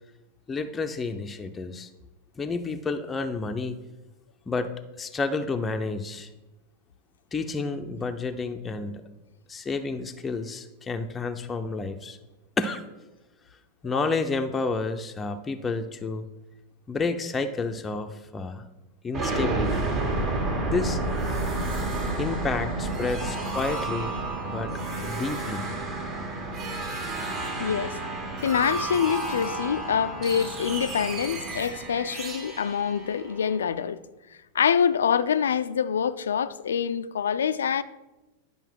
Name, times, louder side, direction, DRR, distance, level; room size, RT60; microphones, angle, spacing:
voice 1, 0.5-1.9 2.4-3.8 4.5-6.3 7.3-9.0 9.5-12.2 12.6-12.8 13.8-16.2 16.9-18.7 19.0-19.9 20.6-21.0 22.2-24.2 24.5-24.7 25.0-25.7, left 3 dB, 15° left, 0.5 m, -30 dB
sound 1, 19.1-33.8, right 2 dB, 35° right, 1.7 m, -30 dB
voice 2, 27.6-28.0 28.4-34.0 34.5-37.8, left 7 dB, 65° left, 0.3 m, -25 dB
10.5 x 5.1 x 4.6 m
figure-of-eight pair, 90°, 0 cm